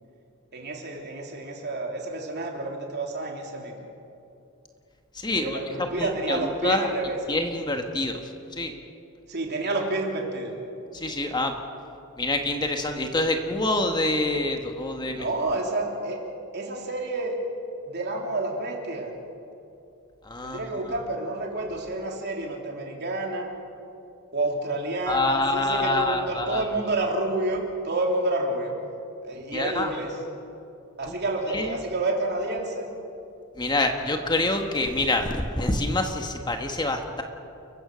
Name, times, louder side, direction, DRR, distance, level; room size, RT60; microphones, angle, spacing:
voice 1, 0.5-3.8 5.3-7.2 9.3-10.6 15.1-16.2 16.5-17.4 17.8-19.1 20.4-23.5 24.3-28.8 29.2-30.1 31.0-32.9, right 2 dB, 50° right, 0 dB, 3.4 m, -29 dB
voice 2, 5.1-5.6 6.0-6.9 7.3-8.2 8.5-8.7 10.9-11.5 12.2-15.2 20.2-20.6 25.1-26.7 29.5-29.9 31.1-31.2 31.5-31.8 33.5-37.2, left 2 dB, 20° left, 4 dB, 1.4 m, -26 dB
29.5 x 15.5 x 6.4 m, 2.7 s
head